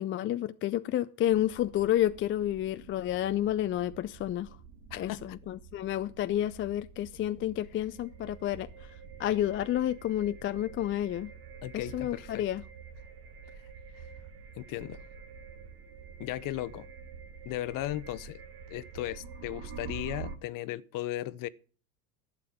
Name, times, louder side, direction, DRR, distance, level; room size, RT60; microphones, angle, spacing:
voice 1, 0.0-4.5 4.9-8.7 9.2-11.3 11.7-12.6, left 12 dB, 30° left, 0.5 m, -30 dB
sound 1, 1.3-20.4, right 6 dB, 60° right, 1.9 m, -47 dB
voice 2, 4.9-5.4 11.6-12.4 14.6-15.0 16.2-16.9 17.4-18.4 18.7-21.5, left 15 dB, 45° left, 0.8 m, -36 dB
11.5 x 7.5 x 7.0 m
hypercardioid pair, 90°, 45 cm